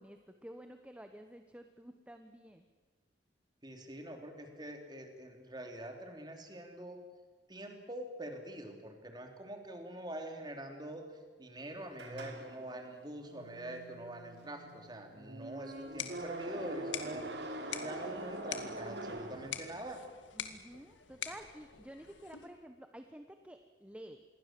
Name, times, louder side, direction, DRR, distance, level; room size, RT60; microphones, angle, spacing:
voice 1, 0.0-2.6 20.3-24.2, right 1 dB, 5° right, 7 dB, 1.0 m, -51 dB
voice 2, 3.6-7.0 7.5-11.0 11.4-17.3 17.7-20.0, right 1 dB, 25° right, 4 dB, 3.4 m, -45 dB
Metallic Groan, 12.0-20.0, right 1 dB, 65° right, 3.0 m, -44 dB
sound 1, 15.7-22.6, left 8 dB, 90° left, 2.2 m, -46 dB
27.5 x 22.0 x 7.7 m, 1.3 s
head